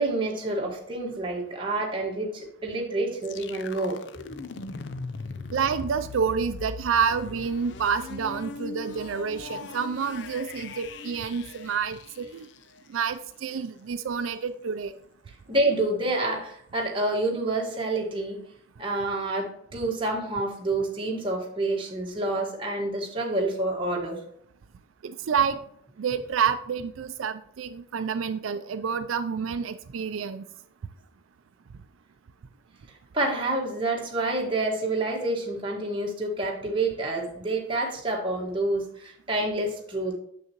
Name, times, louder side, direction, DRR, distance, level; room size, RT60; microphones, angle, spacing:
voice 1, 0.0-4.0 15.5-18.4 18.8-24.2 33.1-40.2, right 2 dB, 25° right, -1 dB, 1.5 m, -28 dB
sound 1, 3.2-13.1, left 4 dB, 65° left, 0.4 m, -40 dB
voice 2, 5.5-12.5 12.9-14.9 25.0-25.6 26.0-30.4, right 6 dB, 90° right, 10 dB, 0.4 m, -28 dB
7.1 x 6.4 x 3.0 m, 0.67 s
head